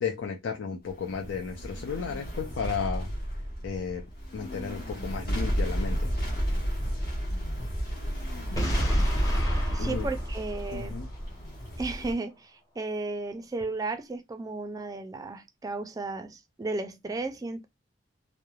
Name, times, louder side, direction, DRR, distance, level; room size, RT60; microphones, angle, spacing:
voice 1, 0.0-3.1 3.6-4.0 4.3-6.1 9.8-10.1 10.7-11.1, left 5 dB, 90° left, 0.4 m, -33 dB
sound 1, 0.9-12.1, equal, 60° left, 1.0 m, -31 dB
Boom, 8.6-11.4, equal, 20° left, 0.7 m, -34 dB
voice 2, 9.7-11.0 11.8-17.7, right 3 dB, 20° right, 0.3 m, -34 dB
3.0 x 2.0 x 2.3 m
head